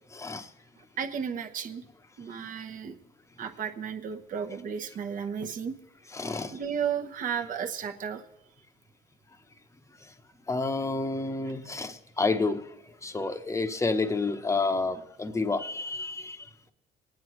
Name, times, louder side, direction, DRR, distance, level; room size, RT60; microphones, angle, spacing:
voice 1, 0.1-0.5 2.3-2.5 6.1-6.6 10.0-10.1 10.5-16.7, left 3 dB, 15° left, 9 dB, 0.8 m, -30 dB
voice 2, 1.0-1.8 2.2-3.0 3.4-5.7 6.5-8.2, right 7 dB, 50° right, 4 dB, 1.0 m, -33 dB
22.0 x 9.5 x 3.1 m, 0.85 s
cardioid pair, 110°, 17 cm